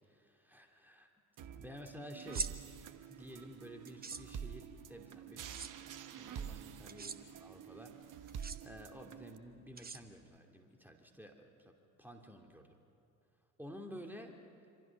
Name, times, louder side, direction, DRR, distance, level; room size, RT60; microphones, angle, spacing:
voice 1, 0.1-1.1 1.6-2.5 3.1-5.5 6.2-12.8 13.6-14.4, equal, 5° right, 3 dB, 2.8 m, -52 dB
sound 1, 1.4-9.4, right 8 dB, 45° right, 1.3 m, -48 dB
sound 2, 2.2-2.5 3.9-4.2 5.4-5.7 6.9-7.2 8.3-8.6 9.8-10.4, right 5 dB, 20° right, 1.2 m, -41 dB
26.5 x 26.5 x 6.1 m, 2.7 s
figure-of-eight pair, 55°, 43 cm